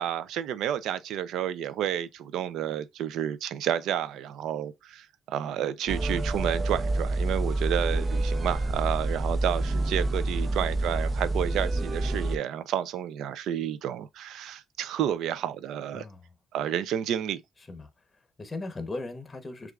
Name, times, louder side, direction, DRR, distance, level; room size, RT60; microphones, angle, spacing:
voice 1, 0.0-16.0 16.5-17.4, right 10 dB, 85° right, 0.4 m, -30 dB
sound 1, 5.9-12.4, right 2 dB, 30° right, 0.6 m, -28 dB
voice 2, 15.9-16.3 17.7-19.7, left 2 dB, 25° left, 1.0 m, -39 dB
6.3 x 2.4 x 2.4 m
cardioid pair, 90°, 0 cm